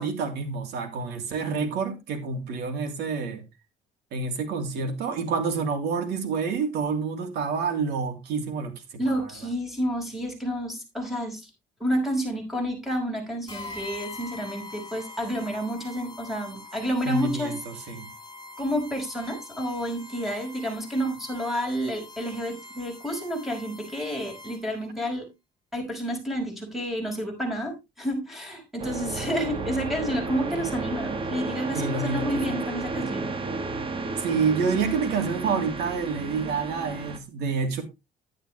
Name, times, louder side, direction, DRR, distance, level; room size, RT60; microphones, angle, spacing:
voice 1, 0.0-3.4 4.1-9.3 17.0-18.1 31.7-32.3 34.2-37.8, right 5 dB, 75° right, 3.0 m, -28 dB
voice 2, 9.0-11.5 11.8-17.5 18.6-25.3 25.7-33.3, equal, ahead, 5.3 m, -30 dB
sound 1, 13.5-24.8, left 3 dB, 25° left, 3.6 m, -43 dB
sound 2, 28.8-37.2, right 3 dB, 30° right, 1.6 m, -32 dB
11.0 x 9.8 x 3.3 m
cardioid pair, 110°, 17 cm